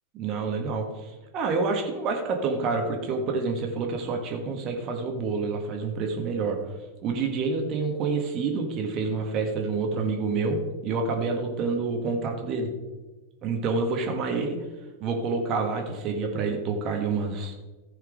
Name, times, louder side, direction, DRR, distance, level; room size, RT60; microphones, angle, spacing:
voice 1, 0.1-6.6 7.0-10.6 10.8-12.7 13.4-14.6 15.0-17.5, right 4 dB, 35° right, 3 dB, 1.6 m, -28 dB
14.5 x 5.6 x 5.0 m, 1.2 s
figure-of-eight pair, 90°, 0 cm